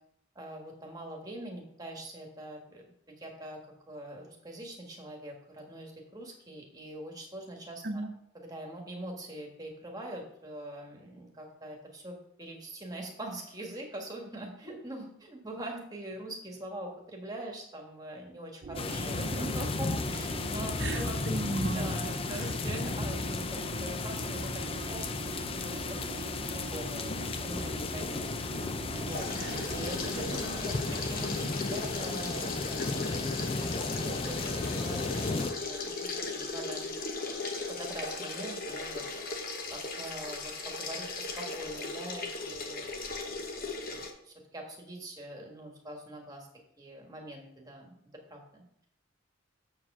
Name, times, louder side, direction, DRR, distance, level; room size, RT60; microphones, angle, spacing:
voice 1, 0.3-3.6 3.9-8.0 8.3-21.2 21.6-36.9 37.7-43.2 43.6-46.5 46.8-48.0 48.3-48.9, right 1 dB, 20° right, 1 dB, 1.5 m, -43 dB
sound 1, 18.6-31.3, right 4 dB, 40° right, 0.3 m, -43 dB
sound 2, 18.7-35.5, left 3 dB, 30° left, 0.4 m, -34 dB
voice 2, 20.8-21.9 22.3-22.4 29.4-29.7, right 2 dB, 60° right, 4 dB, 1.0 m, -35 dB
sound 3, 29.1-44.1, left 3 dB, 45° left, 1.1 m, -37 dB
7.4 x 4.7 x 6.1 m, 0.72 s
head